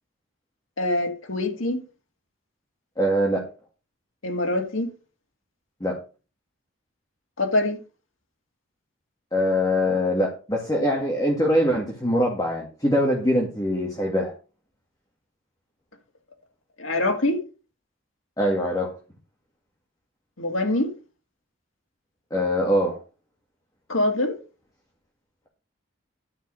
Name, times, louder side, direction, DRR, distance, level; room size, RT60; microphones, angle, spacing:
voice 1, 0.8-1.8 4.2-4.9 7.4-7.8 16.8-17.4 20.4-20.9 23.9-24.4, left 2 dB, 85° left, 2.1 m, -24 dB
voice 2, 3.0-3.5 5.8-6.0 9.3-14.3 18.4-18.9 22.3-23.0, equal, 20° left, 2.0 m, -23 dB
11.5 x 5.4 x 6.3 m
head